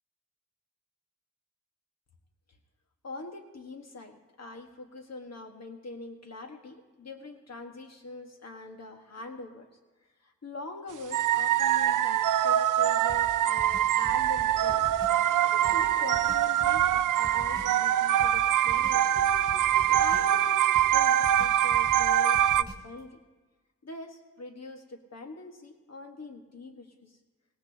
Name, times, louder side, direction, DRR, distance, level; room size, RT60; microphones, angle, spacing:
voice 1, 3.0-9.7 10.2-14.8 15.5-19.2 20.0-23.2 23.8-27.2, left 2 dB, 55° left, 4 dB, 1.7 m, -43 dB
sound 1, 11.1-22.6, right 11 dB, 75° right, 0.5 m, -24 dB
sound 2, 13.1-15.2 15.6-17.8 18.2-20.4 20.7-23.0, right 1 dB, 15° right, 4.9 m, -45 dB
sound 3, 14.5-20.5, equal, 25° left, 3.4 m, -52 dB
18.5 x 18.0 x 2.9 m, 1.3 s
cardioid pair, 50°, 32 cm